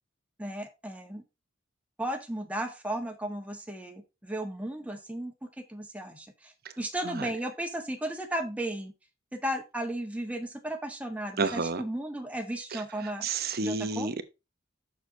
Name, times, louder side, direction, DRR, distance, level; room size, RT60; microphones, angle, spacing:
voice 1, 0.4-1.2 2.0-5.3 5.7-8.9 9.3-13.3 13.6-14.1, right 1 dB, 5° right, 1.5 m, -35 dB
voice 2, 11.4-11.8 12.7-12.8 13.2-14.2, right 3 dB, 50° right, 0.9 m, -30 dB
6.8 x 6.5 x 4.0 m
head